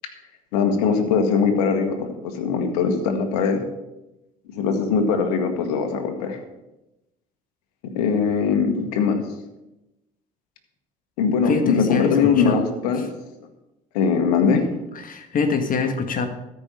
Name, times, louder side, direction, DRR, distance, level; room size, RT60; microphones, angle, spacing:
voice 1, 0.5-3.6 4.5-6.4 7.9-9.2 11.2-13.0 13.9-14.7, left 5 dB, 80° left, 5 dB, 1.6 m, -21 dB
voice 2, 11.4-12.6 13.0-13.1 14.9-16.3, left 4 dB, 45° left, 6 dB, 1.6 m, -24 dB
13.5 x 5.5 x 7.7 m, 0.97 s
hypercardioid pair, 70°, 20 cm